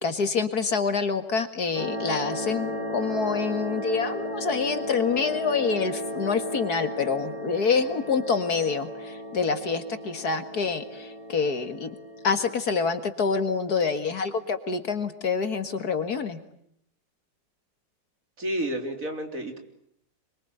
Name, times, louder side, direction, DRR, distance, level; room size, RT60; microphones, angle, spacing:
voice 1, 0.0-11.9 12.2-16.4, left 5 dB, 60° left, 9 dB, 2.3 m, -27 dB
sound 1, 1.7-12.6, left 1 dB, 65° right, 8.5 m, -35 dB
voice 2, 18.4-19.6, right 1 dB, 45° right, 5 dB, 4.0 m, -30 dB
26.5 x 23.5 x 9.3 m, 0.72 s
omnidirectional pair, 1.9 m